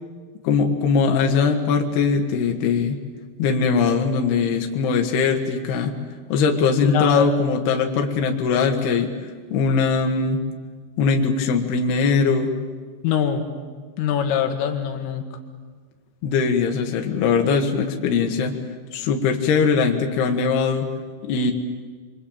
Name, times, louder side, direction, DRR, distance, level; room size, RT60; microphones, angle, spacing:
voice 1, 0.4-3.0 3.4-6.0 6.3-9.1 9.5-10.5 11.0-12.5 16.2-18.6 18.9-20.9 21.2-21.5, left 5 dB, 60° left, 3 dB, 3.7 m, -21 dB
voice 2, 6.8-7.3 13.0-13.5 14.0-15.3, left 8 dB, 85° left, 5 dB, 4.4 m, -22 dB
27.0 x 24.5 x 8.9 m, 1.5 s
omnidirectional pair, 5.7 m